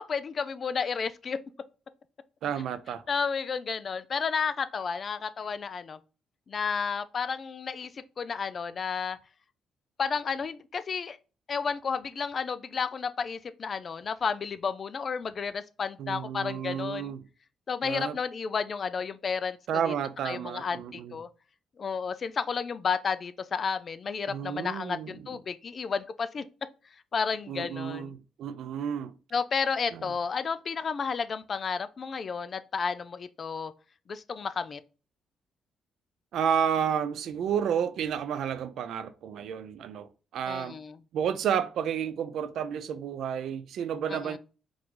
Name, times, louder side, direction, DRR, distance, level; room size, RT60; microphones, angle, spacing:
voice 1, 0.0-1.4 3.1-6.0 6.5-9.2 10.0-11.2 11.5-17.1 17.7-19.6 19.9-20.0 20.2-21.3 21.8-26.4 27.1-28.1 29.3-33.7 34.1-34.8 40.5-41.0 44.1-44.4, left 5 dB, 45° left, 0.4 m, -32 dB
voice 2, 2.4-3.0 16.0-17.2 17.8-18.2 19.7-21.2 24.3-25.1 27.5-29.1 29.9-30.1 36.3-40.8 41.1-44.4, right 8 dB, 75° right, 0.4 m, -31 dB
4.7 x 2.4 x 3.7 m
cardioid pair, 90°, 0 cm